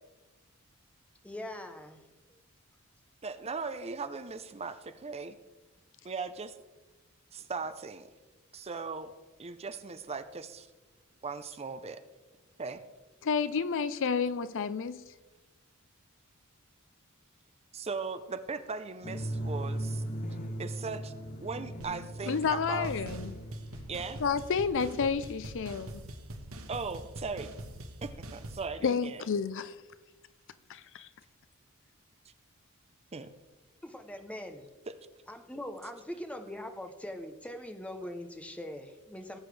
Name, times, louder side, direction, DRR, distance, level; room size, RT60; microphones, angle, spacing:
voice 1, 1.2-2.0 33.8-34.7 35.3-39.4, left 1 dB, 5° left, 0.8 m, -42 dB
voice 2, 3.2-5.4 6.0-6.5 7.3-8.1 8.5-9.1 9.4-10.7 11.2-12.0 12.6-12.8 17.7-20.0 20.6-21.1 21.4-22.9 23.9-24.2 26.7-27.5 28.0-29.2 33.1-33.3 34.9-35.0, right 4 dB, 30° right, 0.6 m, -38 dB
voice 3, 13.2-15.1 22.3-23.3 24.2-26.0 28.8-29.8 30.7-31.1, left 5 dB, 60° left, 0.5 m, -30 dB
sound 1, 19.0-24.4, right 1 dB, 35° left, 1.0 m, -38 dB
sound 2, 21.8-21.9 22.2-22.6 22.8-28.7, right 1 dB, 65° right, 1.3 m, -44 dB
18.0 x 8.0 x 3.3 m
head